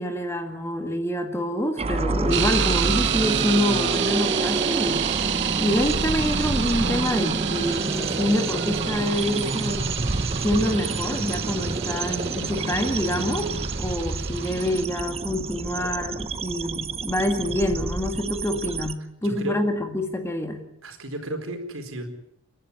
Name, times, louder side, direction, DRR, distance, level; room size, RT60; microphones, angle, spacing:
voice 1, 0.0-5.1 5.6-9.8 10.4-20.6, left 1 dB, 10° left, 6 dB, 2.0 m, -26 dB
sound 1, 1.8-18.9, right 2 dB, 30° right, 0.8 m, -28 dB
sound 2, 2.3-14.8, right 11 dB, 55° right, 0.8 m, -29 dB
voice 2, 19.2-19.6 20.8-22.1, right 1 dB, 70° right, 5 dB, 4.4 m, -33 dB
29.5 x 11.5 x 9.6 m, 0.82 s
head